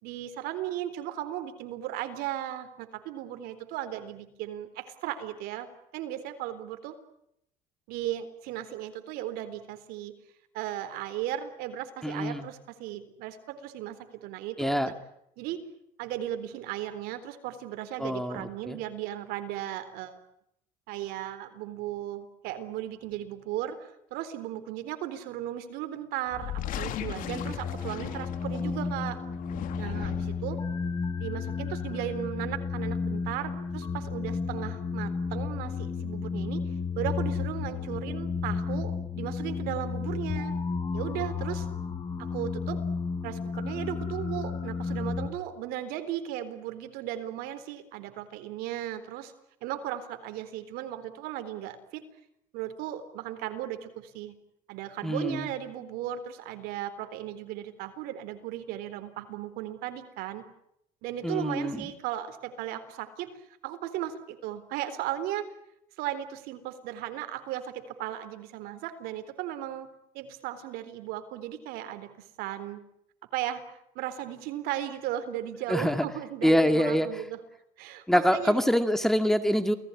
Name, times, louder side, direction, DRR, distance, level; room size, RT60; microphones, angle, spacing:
voice 1, 0.0-5.7 5.9-7.0 7.9-10.1 10.5-14.9 15.4-15.6 16.0-20.2 20.9-29.2 29.8-30.6 31.2-36.6 37.0-40.5 40.9-41.7 42.2-42.8 43.2-49.3 49.6-52.0 52.5-54.3 54.7-60.4 61.0-65.4 66.0-69.9 70.1-72.8 73.3-73.6 74.0-77.4 77.8-78.6, right 12 dB, 80° right, 10 dB, 3.9 m, -36 dB
voice 2, 12.0-12.5 14.6-14.9 18.0-18.8 55.0-55.5 61.2-61.9 75.7-76.1 76.4-77.1 78.1-79.7, equal, ahead, 8 dB, 2.1 m, -25 dB
sound 1, 26.3-28.9 29.3-30.5, left 11 dB, 60° left, 2.6 m, -38 dB
sound 2, 27.2-45.3, left 5 dB, 25° left, 5.2 m, -32 dB
29.0 x 19.0 x 9.9 m, 0.77 s
cardioid pair, 130°, 16 cm